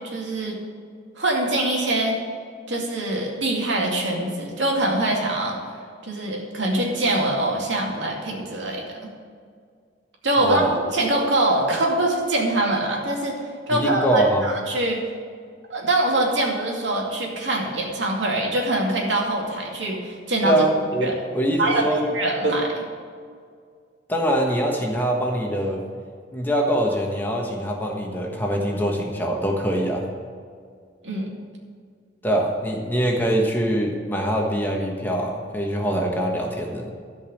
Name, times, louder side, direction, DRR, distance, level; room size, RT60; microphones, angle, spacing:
voice 1, 0.1-0.6 1.2-2.2 2.7-5.7 6.0-9.1 10.2-10.6 10.9-13.4 13.7-15.0 15.7-20.6 21.0-21.1 21.6-22.7 31.0-31.3, right 1 dB, 75° right, -1 dB, 2.4 m, -23 dB
voice 2, 10.4-10.8 13.7-14.5 20.4-21.1 21.3-22.1 24.1-25.8 26.3-30.0 32.2-36.9, right 1 dB, 10° left, -1 dB, 1.3 m, -23 dB
13.5 x 5.3 x 8.7 m, 2.1 s
head